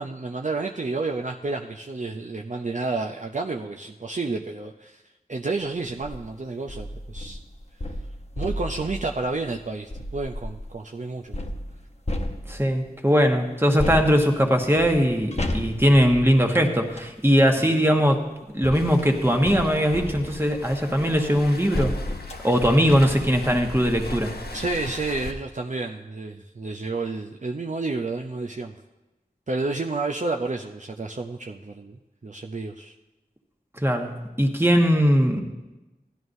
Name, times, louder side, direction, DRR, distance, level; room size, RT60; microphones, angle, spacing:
voice 1, 0.0-5.0 5.3-7.4 8.4-11.4 17.6-17.7 24.5-28.7 29.5-32.9, right 3 dB, 50° right, 1 dB, 0.5 m, -30 dB
sound 1, 5.9-6.2 6.7-10.7 11.3-12.9 13.8-17.2 18.1-24.0 24.5-24.6 24.8-25.0, left 1 dB, 40° left, 0.9 m, -34 dB
voice 2, 12.5-18.2 18.5-21.9 22.4-24.3 33.8-35.4, equal, 15° right, 3 dB, 1.2 m, -20 dB
Waves surf, 18.7-25.3, left 2 dB, 75° left, 0.9 m, -38 dB
16.0 x 11.0 x 2.6 m, 1.1 s
wide cardioid pair, 40°, 16 cm